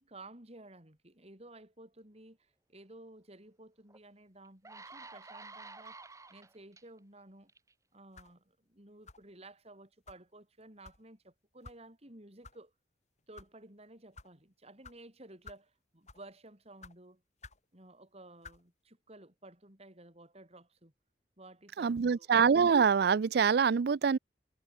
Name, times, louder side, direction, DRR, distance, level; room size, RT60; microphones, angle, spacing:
voice 1, 0.0-6.0 6.3-7.5 7.9-12.7 13.3-17.2 17.7-20.9 21.4-22.3, right 2 dB, 35° right, 5.7 m, -54 dB
sound 1, 3.9-4.0 4.4-6.8 7.5-7.7, right 3 dB, 20° right, 5.3 m, -50 dB
sound 2, 8.1-8.4 9.1-9.3 10.1-10.2 10.8-11.0 11.6-11.8 12.4-12.6 13.2-13.5 14.1-14.3 14.8-15.0 15.4-15.7 16.0-16.3 16.8-17.0 17.4-17.6 18.4-18.6, left 4 dB, 40° left, 4.0 m, -52 dB
voice 2, 21.8-24.2, right 6 dB, 60° right, 0.4 m, -25 dB
head